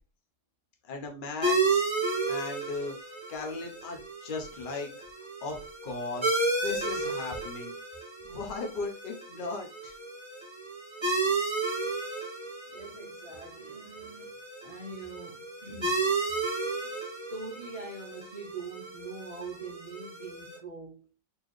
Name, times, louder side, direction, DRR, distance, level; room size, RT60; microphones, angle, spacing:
voice 1, 0.9-1.8 2.3-2.9 3.3-4.9 5.4-5.6 5.8-6.3 6.6-7.7 8.2-9.9, left 3 dB, 40° left, 0.8 m, -37 dB
sound 1, 1.4-20.6, right 3 dB, 20° right, 1.1 m, -33 dB
voice 2, 12.7-14.4 14.6-16.1 16.8-17.0 17.3-21.1, right 3 dB, 75° right, 0.3 m, -43 dB
4.3 x 3.0 x 3.1 m
omnidirectional pair, 1.7 m